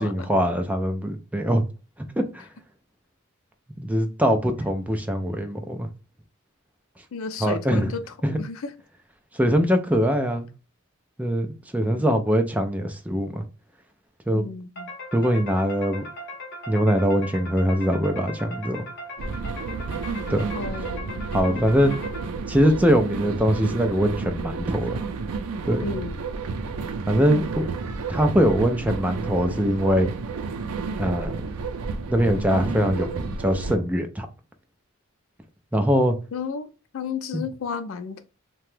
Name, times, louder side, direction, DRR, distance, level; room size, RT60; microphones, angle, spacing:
voice 1, 0.0-1.6 2.2-2.4 3.8-5.9 7.4-7.9 8.2-8.4 9.3-10.5 11.2-13.4 14.3-14.4 15.1-16.0 16.7-18.8 20.3-20.5 21.3-21.9 22.5-25.0 25.7-25.9 27.1-27.7 28.1-30.1 31.0-31.5 32.1-34.3 35.7-36.2 37.3-37.5, equal, 5° right, 0.3 m, -22 dB
voice 2, 7.1-8.0 8.4-8.7 11.8-12.2 14.3-14.9 20.5-21.6 25.8-26.2 36.3-36.7 36.9-38.3, left 5 dB, 65° left, 0.4 m, -33 dB
sound 1, 14.8-22.6, left 1 dB, 50° left, 0.9 m, -38 dB
sound 2, 19.2-33.8, right 4 dB, 90° right, 0.4 m, -31 dB
2.9 x 2.2 x 3.1 m
head